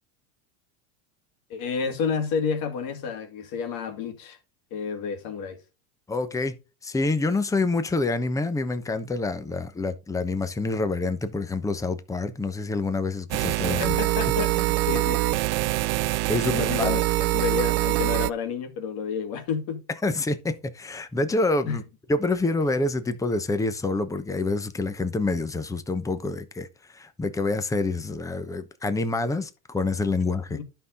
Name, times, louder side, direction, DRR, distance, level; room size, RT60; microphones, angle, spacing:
voice 1, 1.5-4.4 4.7-5.6 13.6-15.4 16.5-17.0 17.3-19.8 21.7-21.8 30.5-30.6, left 6 dB, 55° left, 2.4 m, -30 dB
voice 2, 6.1-6.6 6.8-14.0 16.3-17.0 20.0-21.8 22.1-30.6, left 3 dB, 10° left, 0.9 m, -27 dB
sound 1, 13.3-18.3, right 19 dB, 80° right, 0.6 m, -24 dB
11.0 x 5.7 x 3.9 m
supercardioid pair, 120°, 42 cm